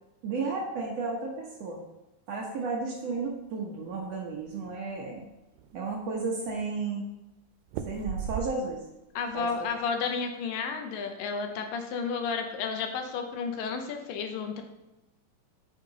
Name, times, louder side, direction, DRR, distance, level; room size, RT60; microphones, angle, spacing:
voice 1, 0.2-1.8 2.3-5.2 5.7-7.1 7.8-8.9 9.3-9.7, right 4 dB, 60° right, -1 dB, 1.8 m, -33 dB
sound 1, 3.8-4.7 5.2-5.3 5.6-6.2 7.7-8.9 9.3-9.7, right 9 dB, 90° right, 2.3 m, -37 dB
voice 2, 9.2-14.6, left 5 dB, 85° left, 5 dB, 2.6 m, -32 dB
9.1 x 5.9 x 4.0 m, 0.95 s
omnidirectional pair, 4.0 m